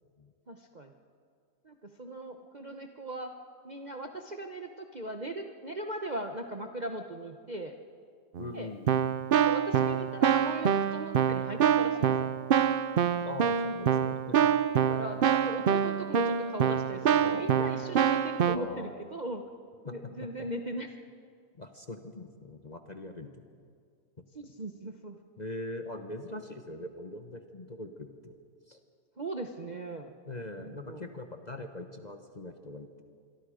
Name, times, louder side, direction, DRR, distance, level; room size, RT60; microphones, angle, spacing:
voice 1, 0.5-0.9 1.6-3.3 3.6-7.8 8.5-8.7 9.4-12.2 14.9-19.4 19.8-20.9 24.3-25.2 29.2-30.1 30.6-31.0, right 1 dB, 35° right, 4 dB, 0.8 m, -39 dB
Keyboard (musical), 8.3-8.5 8.9-18.6, right 8 dB, 75° right, 0.5 m, -26 dB
voice 2, 8.4-9.0 13.2-14.5 17.2-17.5 18.5-19.0 19.8-20.5 21.5-23.4 25.4-28.4 28.7-28.8 30.3-33.0, left 2 dB, 30° left, 5 dB, 1.0 m, -42 dB
26.5 x 22.5 x 5.1 m, 2.2 s
omnidirectional pair, 1.8 m